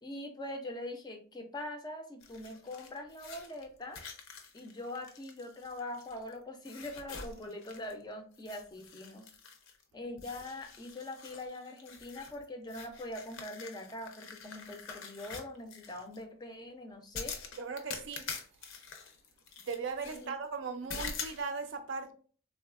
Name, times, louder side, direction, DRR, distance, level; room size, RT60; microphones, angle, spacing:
voice 1, 0.0-4.0 4.5-9.3 9.9-17.4 20.1-20.3, left 1 dB, 20° left, 0.4 m, -43 dB
sound 1, 2.2-6.3 6.7-8.0 8.3-9.8 10.2-16.2 17.1-20.3 20.9-21.4, left 5 dB, 75° left, 0.5 m, -46 dB
voice 2, 17.6-18.3 19.6-22.1, right 5 dB, 65° right, 0.4 m, -38 dB
3.5 x 2.3 x 2.3 m
head